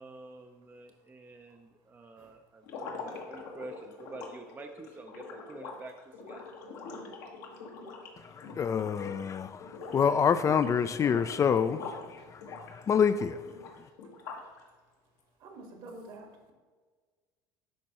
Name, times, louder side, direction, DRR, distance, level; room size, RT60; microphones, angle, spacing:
voice 1, 0.0-6.5, right 3 dB, 20° right, 0.5 m, -48 dB
sound 1, 2.6-9.3 9.6-10.1 10.4-12.1 12.4-14.6, left 4 dB, 75° left, 1.2 m, -44 dB
voice 2, 3.1-3.4 8.0-8.6 9.8-9.9 12.2-12.5 14.0-14.5 15.4-16.5, right 2 dB, 60° right, 1.6 m, -52 dB
voice 3, 8.2-13.9, left 7 dB, 30° left, 0.4 m, -28 dB
11.0 x 4.5 x 3.0 m
hypercardioid pair, 80°, 10 cm